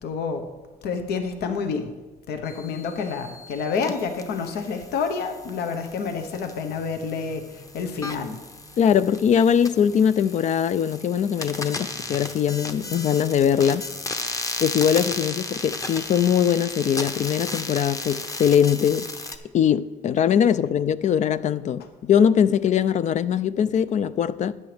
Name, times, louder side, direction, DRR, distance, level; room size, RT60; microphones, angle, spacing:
voice 1, 0.0-0.4 0.8-1.9 2.3-8.4, left 5 dB, 75° left, 1.1 m, -28 dB
sound 1, 2.5-19.4, left 2 dB, 20° left, 0.9 m, -35 dB
voice 2, 8.8-13.8 14.6-19.1 19.5-24.5, left 8 dB, 45° left, 0.4 m, -21 dB
13.5 x 9.5 x 3.4 m
cardioid pair, 110°, 17 cm